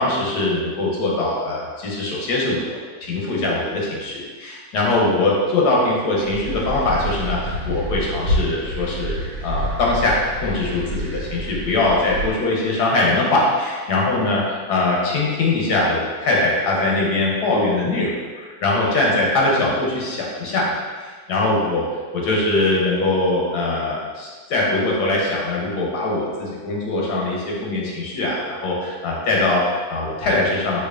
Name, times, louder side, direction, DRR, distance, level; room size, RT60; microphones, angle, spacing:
voice 1, 0.0-14.4 14.7-21.8 22.1-30.9, left 2 dB, 85° left, -3 dB, 1.4 m, -22 dB
sound 1, 6.2-12.3, equal, 85° right, 1.5 m, -28 dB
4.5 x 2.5 x 2.4 m, 1.5 s
omnidirectional pair, 1.7 m